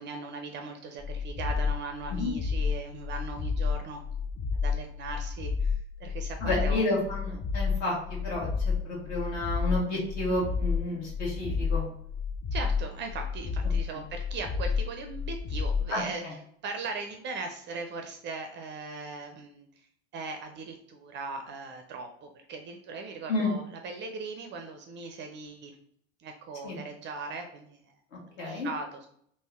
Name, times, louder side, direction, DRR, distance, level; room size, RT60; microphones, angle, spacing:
voice 1, 0.0-4.0 4.6-6.8 12.5-16.4 16.6-19.7 20.1-25.8 26.2-27.8 28.4-29.1, right 4 dB, 35° right, 5 dB, 0.4 m, -39 dB
sound 1, 1.0-16.0, left 5 dB, 25° left, 0.4 m, -30 dB
voice 2, 6.4-8.5 8.8-11.8 13.9-14.0 15.9-16.0 23.3-23.5 26.6-26.8 28.4-28.7, left 2 dB, 55° left, -3 dB, 1.4 m, -30 dB
3.4 x 2.5 x 3.4 m, 0.66 s
figure-of-eight pair, 65°, 33 cm